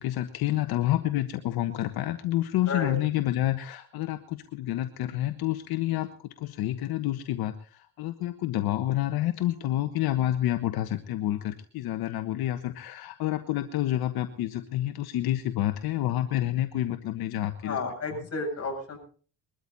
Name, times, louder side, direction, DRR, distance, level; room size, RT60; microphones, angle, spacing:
voice 1, 0.0-17.8 18.1-18.3, left 14 dB, 75° left, 9 dB, 1.3 m, -29 dB
voice 2, 17.6-19.0, left 3 dB, 40° left, 2 dB, 8.0 m, -32 dB
22.0 x 13.5 x 4.1 m, 0.42 s
cardioid pair, 95°, 38 cm